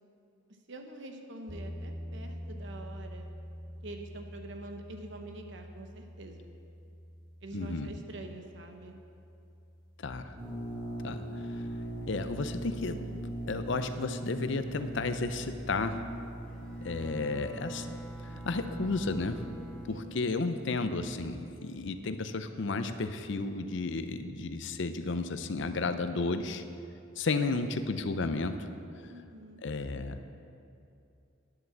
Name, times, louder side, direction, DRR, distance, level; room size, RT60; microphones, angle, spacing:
voice 1, 0.7-3.3 3.8-6.6 7.4-9.0 19.9-20.5 27.5-28.0 29.1-29.6, right 1 dB, 60° right, 4 dB, 1.0 m, -46 dB
sound 1, 1.5-10.4, equal, 20° left, 2.8 m, -46 dB
voice 2, 7.5-7.9 10.0-10.3 11.0-11.2 11.5-11.6 12.1-13.1 13.5-16.0 16.8-18.0 18.3-19.4 19.9-26.6 27.2-28.6 29.6-30.2, left 3 dB, 60° left, 9 dB, 0.6 m, -33 dB
sound 2, 10.4-21.2, right 1 dB, 25° right, 2.1 m, -40 dB
Bowed string instrument, 16.4-20.2, equal, 5° left, 1.2 m, -50 dB
10.0 x 7.9 x 7.1 m, 2.6 s
head